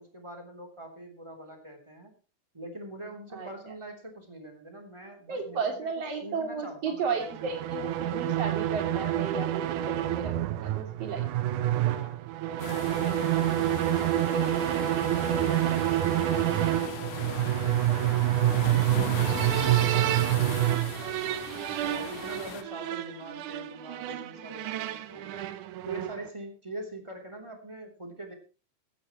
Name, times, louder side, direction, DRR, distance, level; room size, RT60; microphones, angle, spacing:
voice 1, 0.0-2.1 2.5-7.5 11.9-12.3 12.5-18.1 18.5-21.4 21.8-25.5 25.8-28.3, right 1 dB, 10° right, 2 dB, 2.9 m, -44 dB
voice 2, 5.3-10.3 10.6-11.3, right 5 dB, 50° right, 3 dB, 3.7 m, -33 dB
sound 1, 7.2-26.3, right 13 dB, 80° right, 2.3 m, -28 dB
sound 2, 12.6-22.6, left 8 dB, 65° left, 2.5 m, -40 dB
16.5 x 15.0 x 3.1 m, 0.33 s
omnidirectional pair, 3.7 m